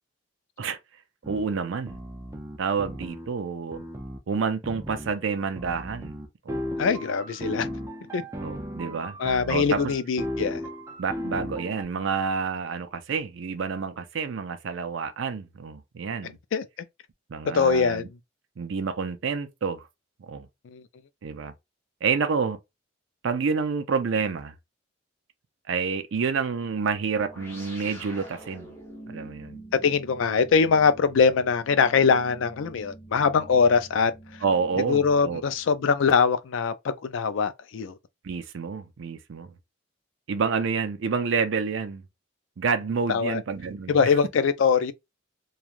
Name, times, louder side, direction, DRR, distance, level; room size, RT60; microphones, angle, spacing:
sound 1, 1.2-1.4 1.9-3.3 3.7-4.2 4.6-5.1 5.6-11.8, equal, 15° right, 0.4 m, -35 dB
voice 1, 1.3-2.0 2.6-3.8 4.3-6.1 6.5-6.6 8.4-9.1 9.5-9.8 11.0-16.4 17.3-18.1 18.6-19.9 20.3-20.5 21.2-21.5 22.0-22.6 23.2-24.5 25.7-28.7 29.1-29.6 34.4-35.4 38.2-39.5 40.3-42.0 42.6-44.0, right 5 dB, 70° right, 0.4 m, -28 dB
voice 2, 6.8-7.7 8.1-8.2 9.2-10.6 16.5-16.7 17.4-18.0 20.7-20.8 29.8-34.1 34.9-37.9 43.1-43.4 43.9-44.9, left 5 dB, 70° left, 0.4 m, -22 dB
sound 2, 27.2-36.0, right 1 dB, 10° left, 0.8 m, -46 dB
3.0 x 2.3 x 2.4 m
head